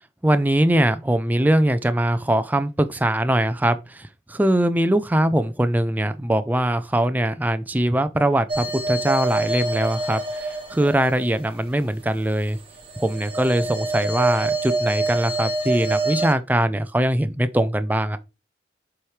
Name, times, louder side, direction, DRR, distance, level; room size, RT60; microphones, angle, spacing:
voice 1, 0.2-12.6 13.0-18.2, right 1 dB, 10° right, 0.4 m, -22 dB
sound 1, 8.5-11.8 12.4-16.3, right 2 dB, 30° right, 1.4 m, -26 dB
7.3 x 4.9 x 3.2 m
head